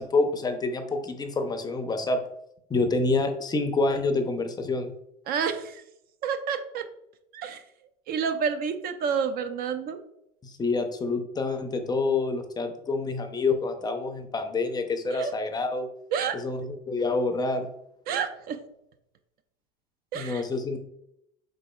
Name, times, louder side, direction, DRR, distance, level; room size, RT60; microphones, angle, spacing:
voice 1, 0.0-2.2 2.7-4.9 10.4-15.9 16.3-17.7 20.1-20.8, left 3 dB, 20° left, 7 dB, 0.5 m, -27 dB
voice 2, 5.3-5.8 6.2-6.9 7.3-7.6 8.1-10.0 15.1-15.3 16.1-16.4 18.1-18.6 20.1-20.4, right 6 dB, 45° right, 9 dB, 0.5 m, -29 dB
4.7 x 4.0 x 2.2 m, 0.79 s
hypercardioid pair, 90°, 21 cm